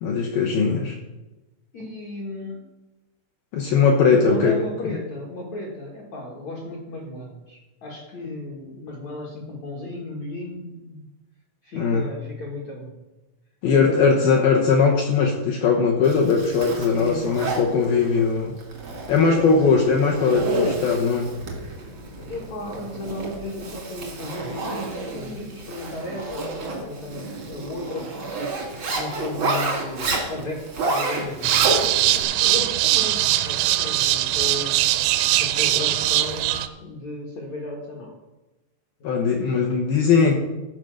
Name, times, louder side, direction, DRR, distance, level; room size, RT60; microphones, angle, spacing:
voice 1, 0.0-1.0 3.5-4.6 11.7-12.0 13.6-18.5 19.1-21.3 39.0-40.4, left 5 dB, 75° left, 0 dB, 2.1 m, -19 dB
voice 2, 1.7-2.6 4.3-11.1 11.6-13.0 13.7-14.4 16.9-18.3 19.2-20.0 22.2-34.7 35.4-38.1 39.0-39.3, left 2 dB, 60° left, -3 dB, 1.9 m, -35 dB
Zipper (clothing), 16.0-32.2, right 2 dB, 60° right, 1.2 m, -30 dB
sound 1, 31.4-36.7, right 14 dB, 85° right, 3.1 m, -21 dB
15.0 x 5.1 x 6.4 m, 1.1 s
omnidirectional pair, 5.6 m